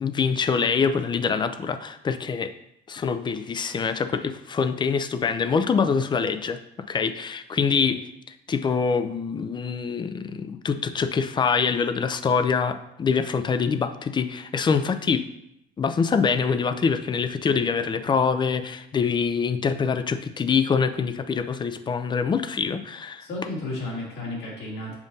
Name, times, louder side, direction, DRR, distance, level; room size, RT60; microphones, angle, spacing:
voice 1, 0.0-2.5 2.9-6.6 6.9-8.0 8.5-15.2 15.8-23.3, left 5 dB, 25° left, 10 dB, 0.4 m, -24 dB
voice 2, 23.2-25.0, left 2 dB, 80° left, -4 dB, 2.4 m, -33 dB
7.1 x 2.6 x 5.3 m, 0.79 s
cardioid pair, 110°, 17 cm